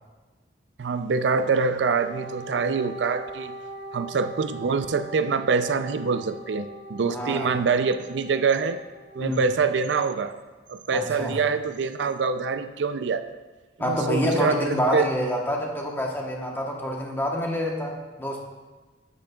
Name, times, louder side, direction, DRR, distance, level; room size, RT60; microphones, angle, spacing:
voice 1, 0.8-3.5 3.9-8.8 9.1-10.3 10.7-13.2 13.8-15.1, right 5 dB, 90° right, 10 dB, 0.4 m, -25 dB
Wind instrument woodwind instrument, 1.8-9.5, right 1 dB, 65° right, 0.8 m, -41 dB
voice 2, 7.1-7.5 9.2-9.4 10.9-11.4 13.8-18.4, equal, 10° left, 0 dB, 1.0 m, -27 dB
8.6 x 8.3 x 2.3 m, 1.3 s
head